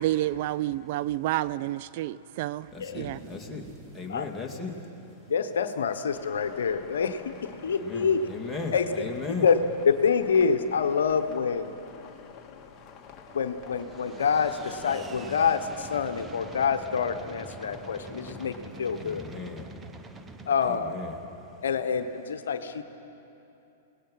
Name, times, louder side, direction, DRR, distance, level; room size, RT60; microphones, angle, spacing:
voice 1, 0.0-2.7 3.0-3.2, right 14 dB, 55° right, 17 dB, 0.4 m, -29 dB
sound 1, 2.6-6.3 6.6-6.8 7.2-7.6 8.7-8.8 9.9-10.0, right 3 dB, 35° right, 2.9 m, -51 dB
voice 2, 2.7-3.6 3.9-4.7 7.6-9.5 19.0-19.6 20.6-21.2, left 4 dB, 5° left, -1 dB, 2.7 m, -36 dB
voice 3, 5.3-8.3 8.7-8.8 9.4-9.6 9.8-11.7 13.3-19.2 20.5-21.0 21.6-22.8, left 6 dB, 75° left, 8 dB, 1.1 m, -26 dB
sound 2, 6.1-18.6, left 7 dB, 30° left, 1.8 m, -50 dB
sound 3, 13.3-22.0, right 2 dB, 15° right, 1.0 m, -46 dB
29.0 x 18.5 x 5.7 m, 2.8 s
hypercardioid pair, 110°, 0 cm